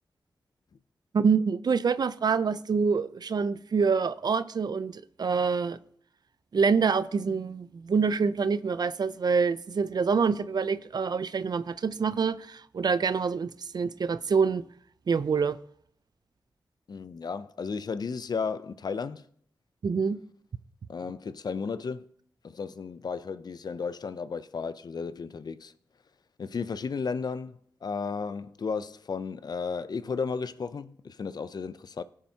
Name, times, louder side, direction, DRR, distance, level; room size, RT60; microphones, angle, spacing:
voice 1, 1.1-5.8 6.5-14.7 15.1-15.6 19.8-20.2, right 5 dB, 60° right, 0.5 m, -26 dB
voice 2, 16.9-19.3 20.9-22.1 22.4-25.7 26.4-32.0, left 5 dB, 60° left, 0.5 m, -34 dB
17.5 x 7.4 x 2.9 m
cardioid pair, 55°, 8 cm